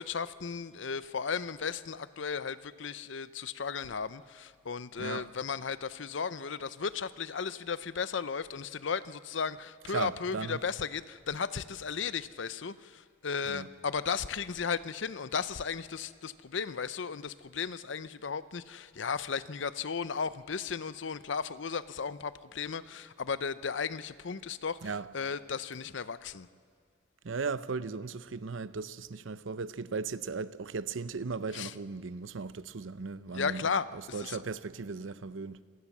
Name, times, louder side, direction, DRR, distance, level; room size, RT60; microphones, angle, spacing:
voice 1, 0.0-26.5 31.5-31.7 33.3-34.4, left 6 dB, 65° left, 0.6 m, -35 dB
voice 2, 9.9-10.6 13.5-13.7 24.8-25.1 27.2-35.6, right 4 dB, 75° right, 0.7 m, -37 dB
26.5 x 18.0 x 7.3 m
head